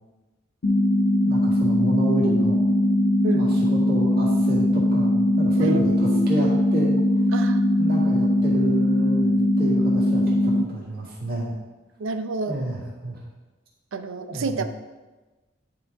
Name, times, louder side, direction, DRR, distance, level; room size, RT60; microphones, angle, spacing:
sound 1, 0.6-10.6, left 1 dB, 55° left, 0.5 m, -20 dB
voice 1, 1.2-2.6 3.3-7.3 7.8-11.5 12.5-13.2 14.3-14.7, right 1 dB, 45° right, -5 dB, 2.0 m, -30 dB
voice 2, 5.6-6.2 7.3-7.7 12.0-12.6 13.9-14.6, right 3 dB, 80° right, 9 dB, 0.5 m, -29 dB
10.5 x 3.8 x 3.5 m, 1.2 s
head